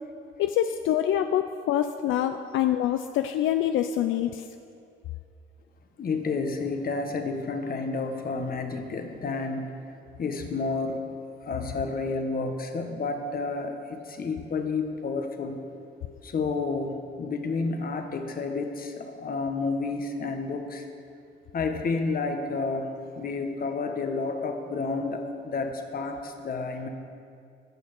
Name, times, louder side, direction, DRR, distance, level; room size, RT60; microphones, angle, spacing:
voice 1, 0.4-4.4, left 11 dB, 80° left, 8 dB, 0.5 m, -25 dB
voice 2, 6.0-9.7 10.2-11.0 11.4-15.6 16.2-20.9 21.5-26.9, left 4 dB, 45° left, 5 dB, 1.4 m, -30 dB
13.5 x 6.5 x 8.0 m, 2.4 s
cardioid pair, 90°, 20 cm